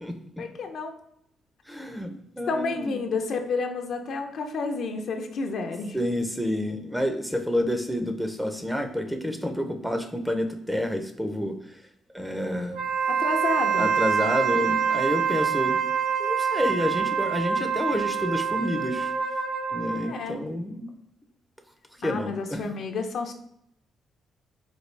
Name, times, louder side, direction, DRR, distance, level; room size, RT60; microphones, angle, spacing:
voice 1, 0.4-0.9 2.0-2.2 2.5-6.0 13.1-13.9 20.0-20.4 22.0-23.3, left 4 dB, 65° left, 4 dB, 0.5 m, -30 dB
voice 2, 1.7-3.1 5.9-11.8 12.1-12.8 13.8-15.8 16.2-19.1 19.7-20.9 22.0-22.7, equal, 5° right, 6 dB, 0.5 m, -29 dB
Wind instrument woodwind instrument, 12.7-20.2, right 7 dB, 70° right, 0.8 m, -26 dB
4.3 x 2.3 x 3.2 m, 0.75 s
cardioid pair, 90°, 0 cm